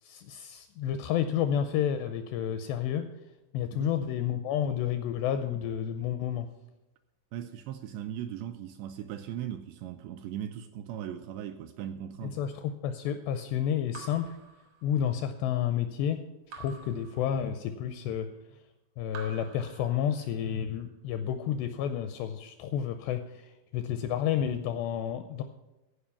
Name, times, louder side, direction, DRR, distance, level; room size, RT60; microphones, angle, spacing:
voice 1, 0.0-3.1 3.5-6.5 12.2-14.4 14.8-16.2 16.6-18.3 19.0-25.4, left 9 dB, 85° left, 8 dB, 2.4 m, -30 dB
voice 2, 7.3-12.4, right 10 dB, 85° right, 7 dB, 2.5 m, -38 dB
Raindrop / Drip, 13.9-15.3 16.5-17.9 19.1-20.5, right 4 dB, 70° right, 1.4 m, -49 dB
15.0 x 5.1 x 7.0 m, 1.0 s
omnidirectional pair, 5.4 m